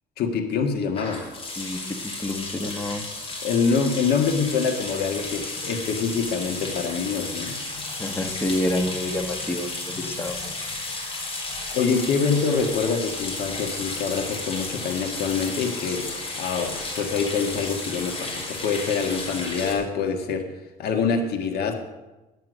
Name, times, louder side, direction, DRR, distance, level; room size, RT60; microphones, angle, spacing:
voice 1, 0.2-1.2 2.6-2.7 3.4-7.6 11.7-20.5 20.8-21.8, left 5 dB, 70° left, 5 dB, 1.6 m, -25 dB
sound 1, 1.0-19.7, left 2 dB, 35° left, 3.9 m, -33 dB
voice 2, 1.6-3.0 8.0-10.7, left 1 dB, 15° left, 4 dB, 1.3 m, -28 dB
11.5 x 9.5 x 6.3 m, 1.1 s
cardioid pair, 110°, 17 cm